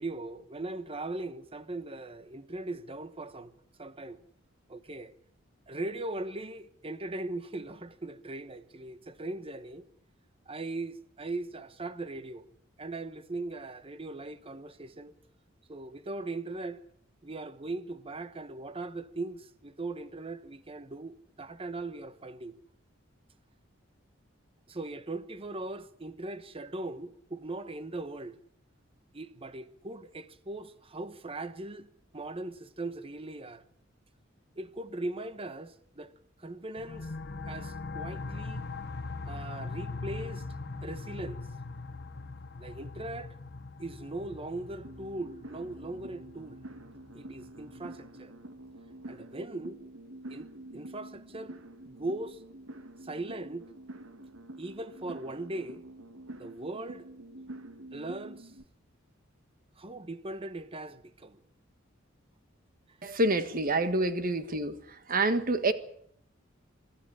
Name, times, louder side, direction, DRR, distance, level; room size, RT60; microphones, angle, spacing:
voice 1, 0.0-3.5 3.8-4.2 4.7-5.1 5.7-9.9 10.5-12.4 12.8-15.1 15.7-16.8 17.2-22.5 24.7-28.4 29.1-31.9 32.1-33.6 34.6-36.1 36.4-37.1 37.5-38.7 39.3-40.4 40.8-41.4 42.6-43.4 43.8-46.7 47.1-48.3 49.1-49.8 50.3-50.5 50.7-51.6 51.8-52.4 53.0-53.7 54.6-55.8 56.4-57.1 57.9-58.5 59.8-61.4 63.9-64.0, right 2 dB, 30° right, 1.0 m, -39 dB
sound 1, 36.8-48.1, left 3 dB, 55° left, 1.0 m, -41 dB
sound 2, 44.8-58.6, right 1 dB, 80° right, 1.6 m, -47 dB
voice 2, 63.0-65.7, right 2 dB, 45° right, 1.6 m, -27 dB
24.0 x 13.0 x 9.9 m
head